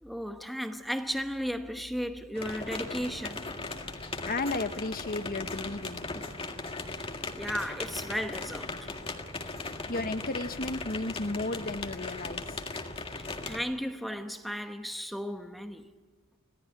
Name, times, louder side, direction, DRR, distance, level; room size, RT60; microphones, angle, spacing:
voice 1, 0.0-3.5 6.9-7.0 7.3-8.9 9.4-9.5 13.2-15.9, equal, ahead, 1.0 m, -35 dB
sound 1, 2.3-13.6, left 3 dB, 25° left, 1.9 m, -38 dB
voice 2, 4.3-6.2 9.9-12.5, left 2 dB, 40° left, 1.2 m, -34 dB
26.0 x 17.5 x 9.8 m
head